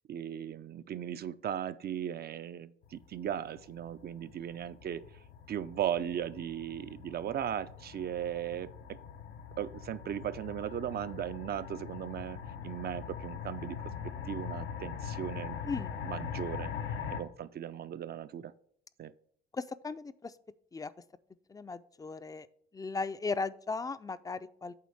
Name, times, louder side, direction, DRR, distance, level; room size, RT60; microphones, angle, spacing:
voice 1, 0.1-5.0 5.5-9.0 9.6-12.4 12.6-13.8 14.3-15.6 16.0-16.7 17.1-18.5 19.0-19.1, right 10 dB, 50° right, 13 dB, 0.5 m, -37 dB
sound 1, 2.8-17.2, left 7 dB, 90° left, 0.8 m, -42 dB
voice 2, 21.5-22.5 22.7-24.7, left 4 dB, 20° left, 14 dB, 0.4 m, -36 dB
8.6 x 3.4 x 6.4 m, 0.62 s
cardioid pair, 90°, 20 cm